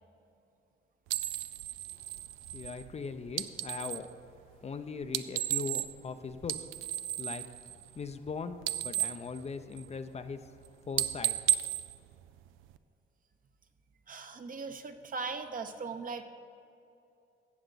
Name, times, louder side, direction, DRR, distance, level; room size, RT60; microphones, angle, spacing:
sound 1, 1.1-4.1 5.0-6.1 6.4-8.3 8.5-10.1 10.4-10.7 10.9-12.8, right 13 dB, 90° right, 0.4 m, -34 dB
voice 1, 2.5-4.1 4.6-6.7 7.2-7.4 8.0-10.5 10.9-11.4, left 5 dB, 35° left, 9 dB, 0.5 m, -40 dB
voice 2, 14.1-16.3, right 4 dB, 45° right, 7 dB, 0.8 m, -39 dB
14.0 x 7.8 x 4.0 m, 2.7 s
cardioid pair, 90°, 20 cm